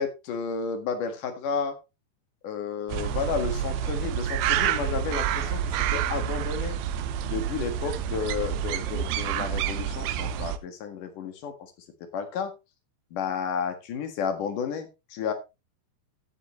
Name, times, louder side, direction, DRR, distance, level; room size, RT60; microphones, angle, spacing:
voice 1, 0.0-1.8 2.4-6.8 7.2-11.7 12.0-12.5 13.1-15.3, left 6 dB, 55° left, 7 dB, 2.7 m, -32 dB
sound 1, 2.9-10.6, right 10 dB, 75° right, 2.5 m, -28 dB
15.0 x 7.8 x 3.1 m, 0.26 s
omnidirectional pair, 5.4 m